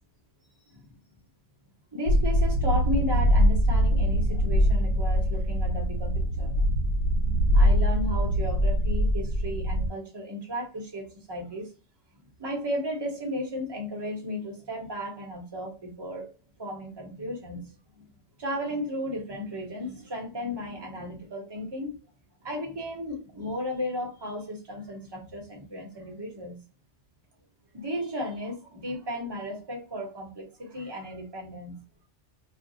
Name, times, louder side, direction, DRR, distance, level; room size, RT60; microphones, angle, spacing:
voice 1, 1.9-6.7 7.5-11.7 12.4-16.3 16.6-18.1 18.4-21.9 22.4-26.6 27.7-31.8, left 1 dB, 25° right, 0.8 m, -34 dB
sound 1, 2.1-9.9, equal, 70° left, 0.9 m, -23 dB
2.5 x 2.1 x 3.9 m
omnidirectional pair, 1.3 m